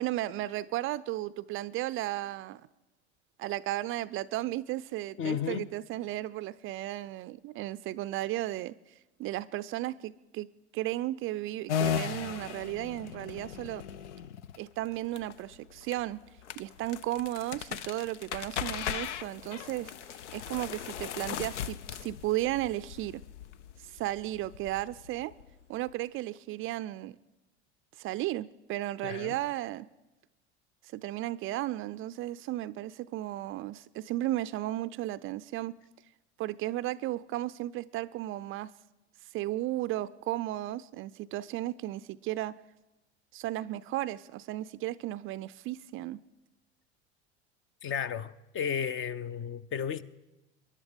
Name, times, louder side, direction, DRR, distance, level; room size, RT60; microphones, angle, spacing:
voice 1, 0.0-2.6 3.4-8.9 9.2-10.5 10.7-13.8 14.6-16.2 16.6-23.2 23.8-25.3 25.7-27.1 28.0-29.9 30.9-35.8 36.4-38.7 39.3-42.5 43.3-46.2, right 15 dB, 40° right, 0.4 m, -34 dB
voice 2, 5.2-5.7 29.0-29.4 47.8-50.0, left 7 dB, 35° left, 0.7 m, -33 dB
sound 1, 11.7-25.9, left 8 dB, 80° left, 0.7 m, -38 dB
23.5 x 11.0 x 5.1 m
hypercardioid pair, 80°, 35 cm